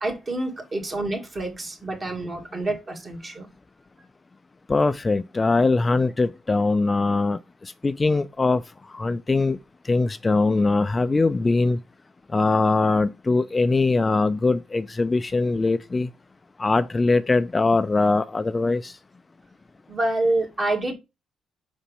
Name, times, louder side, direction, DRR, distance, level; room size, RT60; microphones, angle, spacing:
voice 1, 0.0-3.5 19.9-20.9, right 2 dB, 35° right, 2.0 m, -27 dB
voice 2, 4.7-8.6 8.9-9.6 9.8-11.8 12.3-16.1 16.6-19.0, left 3 dB, 25° left, 0.3 m, -22 dB
5.2 x 4.1 x 5.4 m
cardioid pair, 90°, 0 cm